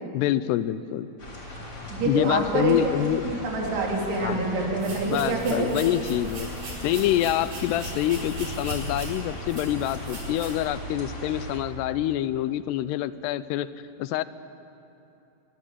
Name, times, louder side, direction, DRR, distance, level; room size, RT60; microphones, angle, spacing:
voice 1, 0.1-1.1 2.0-3.2 4.2-4.5 5.0-6.5 6.8-13.7 14.0-14.2, left 13 dB, 90° left, 15 dB, 2.8 m, -26 dB
sound 1, 1.2-11.6, left 1 dB, 25° left, 3.7 m, -39 dB
voice 2, 1.9-2.9 3.2-5.7, right 3 dB, 80° right, -2 dB, 5.6 m, -26 dB
sound 2, 4.8-10.7, right 1 dB, 50° right, 6.3 m, -38 dB
25.0 x 22.0 x 7.4 m, 2.8 s
omnidirectional pair, 4.7 m